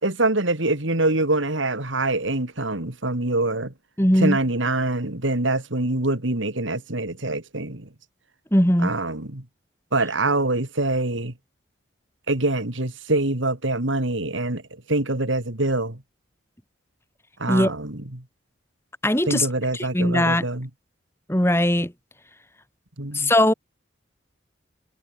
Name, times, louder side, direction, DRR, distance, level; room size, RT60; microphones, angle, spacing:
voice 1, 0.0-3.7 4.1-7.9 8.8-9.4 9.9-11.3 12.3-14.6 14.9-16.0 17.4-18.2 19.3-20.7 23.0-23.3, right 2 dB, 75° right, 2.9 m, -24 dB
voice 2, 4.0-4.4 8.5-8.9 17.5-17.7 19.0-19.5 19.8-20.5 21.3-21.9 23.1-23.5, left 1 dB, 15° left, 3.5 m, -19 dB
head